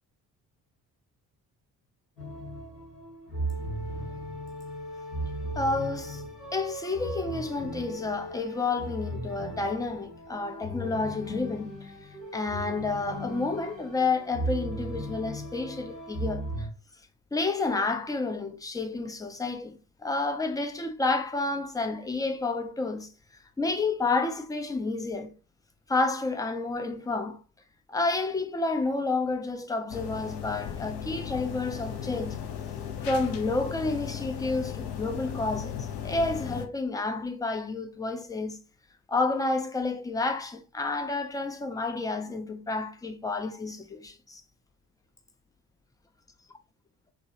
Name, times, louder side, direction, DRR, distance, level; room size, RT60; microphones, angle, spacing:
sound 1, 2.2-16.7, right 1 dB, 80° left, 1.5 m, -37 dB
voice 1, 5.6-6.2 6.5-11.9 12.3-16.7 17.3-19.8 20.0-23.1 23.6-25.3 25.9-27.4 27.9-32.4 33.0-38.6 39.1-44.4, left 3 dB, 10° left, 0.4 m, -30 dB
sound 2, 29.9-36.7, left 9 dB, 55° left, 0.7 m, -36 dB
4.0 x 2.2 x 2.8 m
figure-of-eight pair, 40°, 49 cm